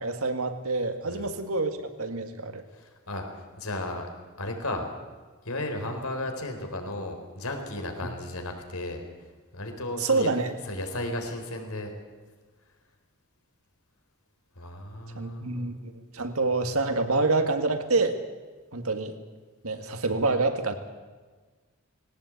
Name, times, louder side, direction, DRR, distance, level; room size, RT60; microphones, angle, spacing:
voice 1, 0.0-2.6 10.0-10.5 15.2-18.2 18.7-19.2 19.6-20.7, right 3 dB, 80° right, 7 dB, 2.0 m, -27 dB
voice 2, 2.7-4.1 4.4-4.9 5.4-9.0 9.5-10.3 10.7-11.9 14.6-15.7, left 1 dB, 80° left, 4 dB, 3.8 m, -34 dB
19.5 x 18.0 x 8.4 m, 1.4 s
head